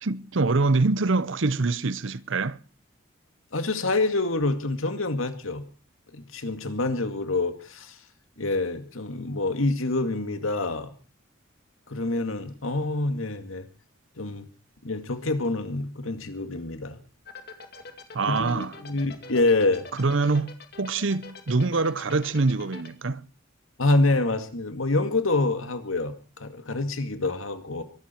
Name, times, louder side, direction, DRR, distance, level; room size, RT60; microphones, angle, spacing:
voice 1, 0.0-2.6 18.1-18.7 20.0-23.2, right 3 dB, 65° right, 0.8 m, -25 dB
voice 2, 3.5-5.6 6.1-8.0 8.4-10.9 11.9-13.7 14.2-14.5 14.8-17.0 18.3-19.9 23.8-27.8, left 2 dB, 80° left, 2.2 m, -26 dB
sound 1, 17.3-22.9, left 4 dB, 50° left, 2.2 m, -43 dB
23.5 x 12.5 x 4.5 m
head